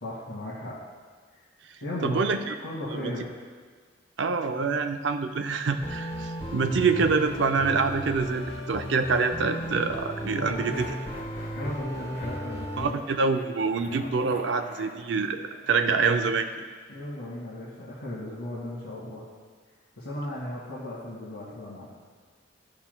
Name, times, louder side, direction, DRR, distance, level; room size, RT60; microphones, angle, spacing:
voice 1, 0.0-0.7 1.3-1.5 1.8-2.2 2.6-3.3 10.3-10.9 11.6-13.0 16.9-19.2 20.0-21.9, left 1 dB, 90° left, -8 dB, 1.6 m, -36 dB
voice 2, 2.0-2.6 2.9-3.1 4.2-10.9 12.8-16.5, right 4 dB, 70° right, 7 dB, 0.5 m, -26 dB
sound 1, 5.8-12.9, equal, 30° left, 0.9 m, -35 dB
sound 2, 10.4-11.7 12.1-13.0 13.3-16.2, left 2 dB, 65° left, 1.1 m, -44 dB
13.5 x 5.7 x 2.2 m, 1.5 s
head